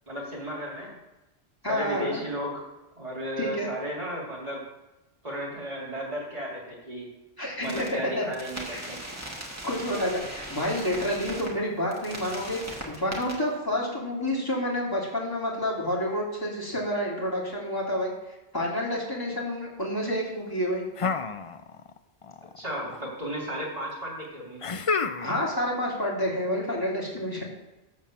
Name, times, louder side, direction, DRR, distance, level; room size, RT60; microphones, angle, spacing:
voice 1, 0.1-0.9 1.7-2.6 3.0-4.6 5.2-7.1 7.6-9.0 22.6-24.6, equal, 35° right, -5 dB, 3.6 m, -34 dB
voice 2, 1.6-2.2 3.4-3.7 7.4-8.2 8.6-8.8 9.6-18.1 18.5-20.9 25.2-27.4, equal, 20° left, -4 dB, 2.8 m, -29 dB
sound 1, 7.6-7.9 8.3-11.5 11.9-13.3, right 1 dB, 15° right, 2.2 m, -39 dB
sound 2, 21.0-22.0 22.2-23.0 24.6-25.5, left 5 dB, 40° left, 0.5 m, -30 dB
12.5 x 4.5 x 7.5 m, 1.0 s
omnidirectional pair, 1.1 m